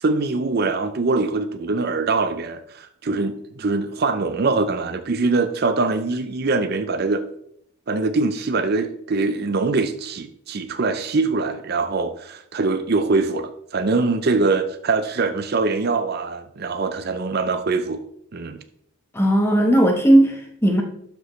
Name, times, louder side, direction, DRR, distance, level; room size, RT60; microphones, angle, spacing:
voice 1, 0.0-7.3 7.9-18.0 18.3-18.6, right 3 dB, 45° right, 0.5 m, -23 dB
voice 2, 19.1-20.8, right 1 dB, 10° left, 1.1 m, -16 dB
12.5 x 5.2 x 3.2 m
head